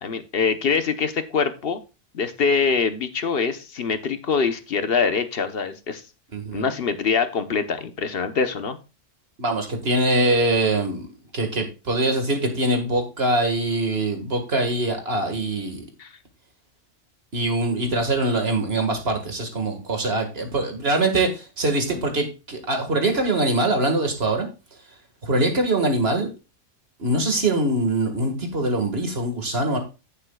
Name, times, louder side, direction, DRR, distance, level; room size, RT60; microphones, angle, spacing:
voice 1, 0.0-1.8 2.1-6.0 6.5-8.8 16.0-16.1, left 5 dB, 55° left, 10 dB, 1.1 m, -24 dB
voice 2, 6.3-6.7 9.4-11.1 11.3-15.8 17.3-24.5 25.2-26.3 27.0-29.8, right 2 dB, 55° right, 4 dB, 2.0 m, -23 dB
15.5 x 7.2 x 2.3 m, 0.29 s
omnidirectional pair, 1.3 m